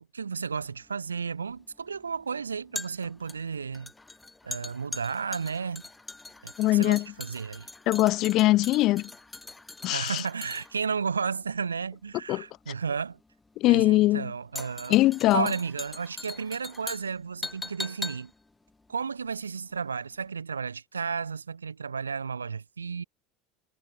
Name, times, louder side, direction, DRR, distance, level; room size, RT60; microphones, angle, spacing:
voice 1, 0.0-3.9 4.4-5.8 6.4-7.7 9.9-13.2 13.7-15.0 15.3-18.3 18.9-23.0, right 5 dB, 80° right, 4.5 m, -33 dB
sound 1, 0.6-19.9 20.1-20.3, left 2 dB, 10° left, 2.0 m, -42 dB
voice 2, 6.6-7.0 7.9-9.1 9.8-10.2 12.3-12.4 13.6-14.3 14.9-15.5, left 17 dB, 50° left, 1.2 m, -22 dB
figure-of-eight pair, 70°, 0 cm